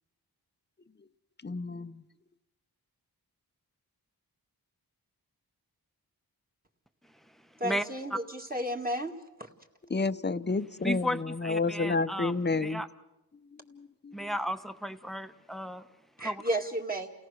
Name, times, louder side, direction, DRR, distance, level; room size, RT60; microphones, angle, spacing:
voice 1, 1.4-2.0 9.9-12.8 13.7-14.3, left 3 dB, 25° left, 12 dB, 0.7 m, -30 dB
voice 2, 7.6-9.1 16.2-17.1, right 1 dB, 20° right, 2 dB, 2.1 m, -32 dB
voice 3, 10.8-12.3 12.6-12.9 14.1-15.8 16.2-16.4, equal, ahead, 10 dB, 0.9 m, -34 dB
29.5 x 17.5 x 6.4 m, 0.98 s
wide cardioid pair, 65°, 39 cm